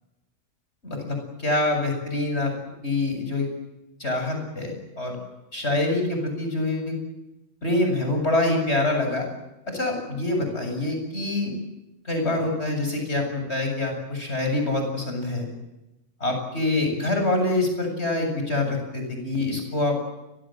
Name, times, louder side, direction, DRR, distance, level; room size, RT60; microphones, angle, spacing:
voice 1, 0.8-2.5 2.8-3.5 4.0-5.2 5.5-6.9 7.6-9.3 9.7-11.5 12.0-15.5 16.2-19.9, left 2 dB, 60° left, 3 dB, 7.8 m, -25 dB
29.5 x 24.0 x 7.7 m, 0.97 s
omnidirectional pair, 1.3 m